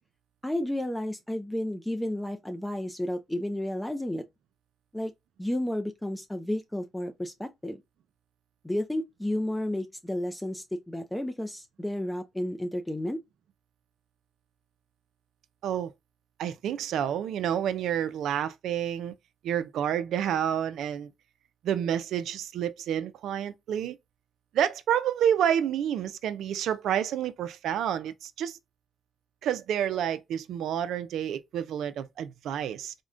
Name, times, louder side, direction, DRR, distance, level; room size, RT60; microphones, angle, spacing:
voice 1, 0.4-4.2 4.9-5.1 5.4-7.8 8.6-13.2, left 1 dB, 10° left, 0.4 m, -32 dB
voice 2, 16.4-19.1 19.4-21.1 21.6-24.0 24.5-28.6 29.4-32.9, right 9 dB, 75° right, 0.4 m, -29 dB
3.5 x 2.1 x 2.5 m
cardioid pair, 90°, 0 cm